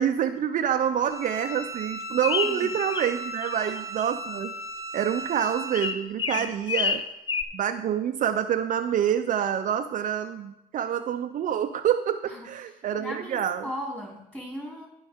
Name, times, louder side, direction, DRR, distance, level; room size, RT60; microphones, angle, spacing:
voice 1, 0.0-4.5 4.9-7.0 7.5-13.7, right 9 dB, 50° right, 7 dB, 0.5 m, -27 dB
Bowed string instrument, 1.0-6.0, right 1 dB, 20° right, 1.3 m, -36 dB
sound 1, 2.2-3.1 3.4-4.0 5.7-7.4, left 6 dB, 30° left, 0.5 m, -28 dB
voice 2, 6.4-6.7 13.0-14.9, equal, 5° left, -1 dB, 2.7 m, -37 dB
15.5 x 5.5 x 3.6 m, 0.86 s
cardioid pair, 110°, 17 cm